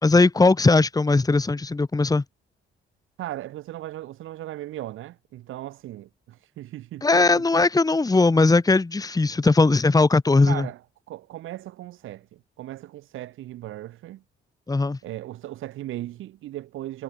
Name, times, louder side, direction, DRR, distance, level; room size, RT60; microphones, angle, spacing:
voice 1, 0.0-2.2 7.0-10.7 14.7-15.0, left 3 dB, 20° left, 1.9 m, -19 dB
voice 2, 3.2-7.6 10.5-10.8 11.1-14.2 15.0-17.0, right 14 dB, 85° right, 5.6 m, -37 dB
cardioid pair, 90°, 20 cm